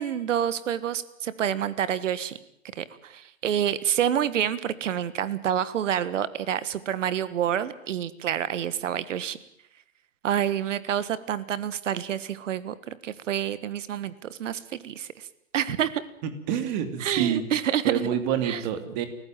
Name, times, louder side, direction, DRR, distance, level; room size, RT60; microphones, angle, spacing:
voice 1, 0.0-2.4 2.7-9.4 10.2-15.3 15.5-16.0 17.0-17.9 18.4-18.6, right 10 dB, 70° right, 16 dB, 1.6 m, -28 dB
voice 2, 16.5-17.4 17.8-19.1, right 9 dB, 35° right, 9 dB, 2.9 m, -27 dB
29.0 x 15.0 x 9.1 m, 0.71 s
hypercardioid pair, 160°, 39 cm